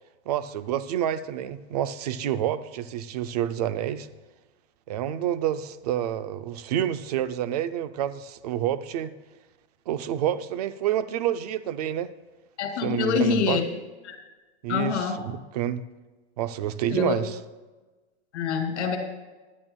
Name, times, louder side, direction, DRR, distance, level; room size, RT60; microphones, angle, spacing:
voice 1, 0.3-4.1 4.9-9.1 9.9-12.1 12.8-13.6 14.6-15.8 16.4-17.4, right 11 dB, 35° right, 12 dB, 0.4 m, -28 dB
voice 2, 12.6-13.6 14.0-14.2 14.7-15.2 16.9-17.2 18.3-19.0, left 6 dB, 80° left, 4 dB, 2.4 m, -25 dB
21.0 x 11.0 x 2.2 m, 1.2 s
supercardioid pair, 175°, 35 cm